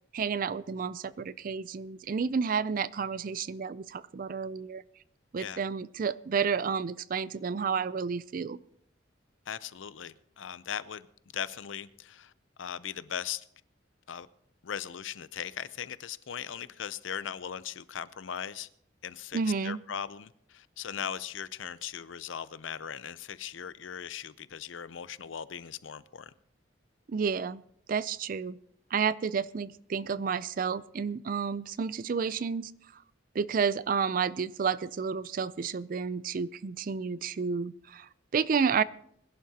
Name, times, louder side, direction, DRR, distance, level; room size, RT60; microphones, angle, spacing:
voice 1, 0.1-4.8 5.3-8.6 19.3-19.8 27.1-27.6 27.9-28.6 28.9-32.7 33.3-38.8, right 6 dB, 45° right, 0.4 m, -31 dB
voice 2, 9.5-11.1 11.3-12.3 12.6-13.4 14.1-14.3 14.6-18.7 19.0-26.3, left 8 dB, 85° left, 0.5 m, -39 dB
21.5 x 11.0 x 2.8 m
head